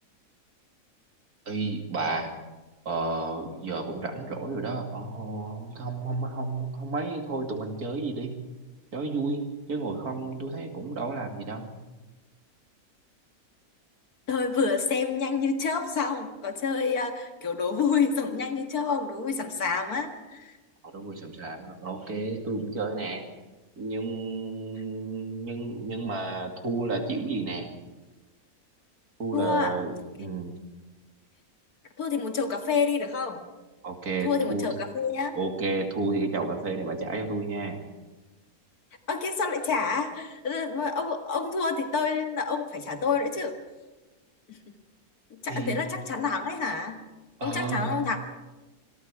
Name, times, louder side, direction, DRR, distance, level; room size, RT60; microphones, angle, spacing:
voice 1, 1.5-2.3 2.9-8.3 8.9-9.4 9.7-11.7 20.9-23.2 23.8-27.7 29.2-29.9 30.2-30.5 33.8-34.7 35.4-37.8 45.5-45.8 47.4-47.9, right 3 dB, 90° right, 4 dB, 3.0 m, -31 dB
voice 2, 14.3-20.5 29.3-29.8 30.2-30.3 32.0-33.4 34.2-35.4 39.1-43.6 44.5-44.6 45.3-47.0 47.4-48.2, left 5 dB, 90° left, 6 dB, 2.4 m, -28 dB
26.5 x 21.0 x 4.9 m, 1.2 s
omnidirectional pair, 1.5 m